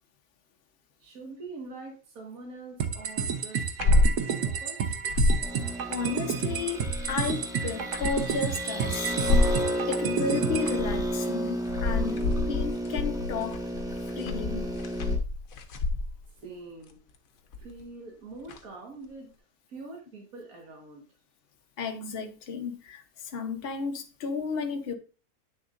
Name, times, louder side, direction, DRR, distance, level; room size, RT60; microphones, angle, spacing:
voice 1, 1.0-5.0 16.3-17.0 17.6-19.3 19.7-21.0, right 3 dB, 65° right, 2.0 m, -44 dB
sound 1, 2.8-10.8, right 7 dB, 90° right, 1.4 m, -31 dB
sound 2, 3.6-4.2 4.5-4.6 4.9-5.5 6.6-7.2 7.7-8.4 9.1-9.6 10.4-11.1 11.5-16.3 17.5-17.8 18.5-18.6, left 2 dB, 65° left, 1.3 m, -27 dB
sound 3, 5.4-15.2, equal, 5° right, 1.3 m, -32 dB
voice 2, 5.9-9.1 9.9-13.6 14.1-14.7 21.8-24.9, left 5 dB, 45° left, 1.1 m, -33 dB
8.9 x 6.6 x 2.5 m
omnidirectional pair, 1.6 m